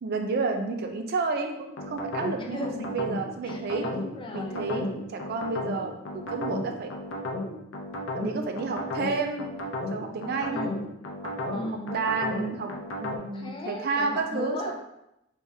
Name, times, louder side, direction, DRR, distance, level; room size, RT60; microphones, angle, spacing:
voice 1, 0.0-3.9 4.3-6.9 8.2-9.5 9.9-10.7 11.2-12.7 13.0-14.7, right 4 dB, 55° right, 5 dB, 0.4 m, -31 dB
sound 1, 1.8-13.2, left 2 dB, 75° left, 0.5 m, -34 dB
voice 2, 2.4-3.0 3.5-5.1 10.5-10.9 11.5-12.0 13.3-14.7, left 1 dB, 25° left, 0 dB, 0.5 m, -36 dB
3.4 x 3.3 x 2.7 m, 0.85 s
head